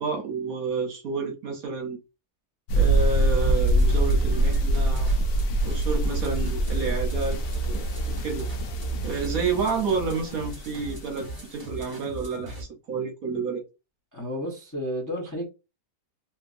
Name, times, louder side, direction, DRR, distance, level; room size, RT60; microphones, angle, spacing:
voice 1, 0.0-2.0 2.7-5.1 5.6-8.5 9.0-13.6, right 5 dB, 65° right, 1.1 m, -30 dB
sound 1, 2.7-11.1, right 1 dB, 85° left, 1.2 m, -25 dB
sound 2, 3.4-12.6, right 2 dB, 20° right, 0.7 m, -35 dB
voice 2, 14.1-15.5, equal, 15° left, 0.6 m, -31 dB
2.9 x 2.7 x 2.5 m
omnidirectional pair, 1.8 m